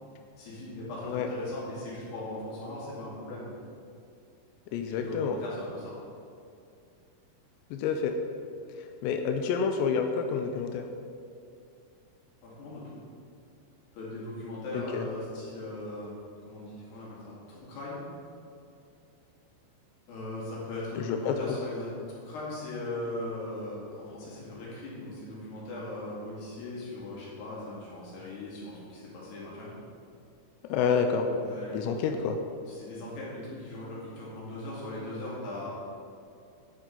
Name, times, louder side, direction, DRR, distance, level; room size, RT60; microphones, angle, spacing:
voice 1, 0.4-3.6 4.9-5.9 12.4-13.0 13.9-16.2 16.5-18.0 20.1-29.7 31.3-32.2 32.7-35.7, left 1 dB, 65° left, -6 dB, 4.1 m, -39 dB
voice 2, 4.7-5.4 7.7-8.2 8.8-10.9 14.7-15.1 21.0-21.6 30.7-31.3 31.7-32.4, left 6 dB, 85° left, 5 dB, 2.5 m, -29 dB
10.0 x 7.3 x 3.9 m, 2.5 s
omnidirectional pair, 5.5 m